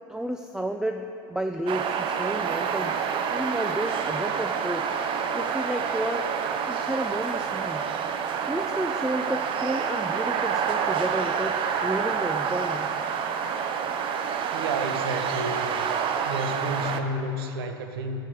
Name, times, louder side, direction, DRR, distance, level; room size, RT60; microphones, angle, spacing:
voice 1, 0.1-4.9 5.3-6.3 6.7-7.9 8.5-12.9, right 1 dB, 5° right, 5 dB, 0.4 m, -31 dB
sound 1, 1.7-17.0, right 7 dB, 45° right, 0.7 m, -28 dB
voice 2, 14.5-15.9 16.2-18.2, right 1 dB, 80° right, 7 dB, 0.8 m, -31 dB
12.0 x 6.8 x 4.8 m, 2.7 s
hypercardioid pair, 90°, 12 cm